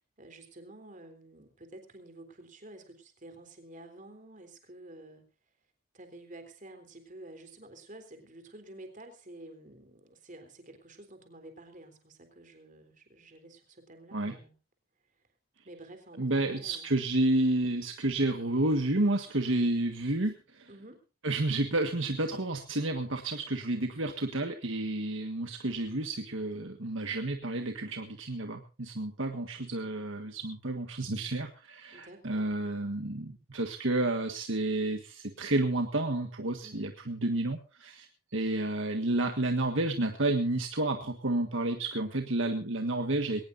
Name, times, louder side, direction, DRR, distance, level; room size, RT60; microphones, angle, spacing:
voice 1, 0.0-5.3 5.9-14.5 15.6-17.0 20.7-21.0 31.9-32.5 36.6-36.9, right 1 dB, 35° right, 7 dB, 3.6 m, -50 dB
voice 2, 16.2-20.7 21.2-43.4, right 2 dB, 60° right, 5 dB, 1.6 m, -30 dB
21.5 x 18.5 x 2.6 m, 0.34 s
head